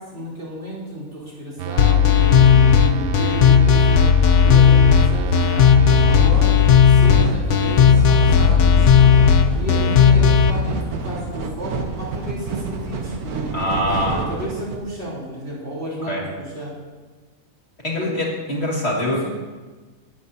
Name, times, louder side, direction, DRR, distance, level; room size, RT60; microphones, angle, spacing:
voice 1, 0.0-4.1 4.4-5.7 6.1-6.6 6.8-9.2 9.5-16.7 17.9-18.1 19.1-19.3, right 1 dB, 45° right, -5 dB, 4.1 m, -32 dB
sound 1, 1.6-8.0, right 11 dB, 65° right, 0.6 m, -31 dB
sound 2, 1.8-10.5, left 7 dB, 60° left, 0.9 m, -14 dB
sound 3, 5.7-14.8, right 4 dB, 85° right, 1.6 m, -29 dB
voice 2, 13.5-14.2 16.1-16.2 17.8-19.2, left 1 dB, 45° left, -3 dB, 2.3 m, -23 dB
18.5 x 13.0 x 2.8 m, 1.3 s
omnidirectional pair, 1.6 m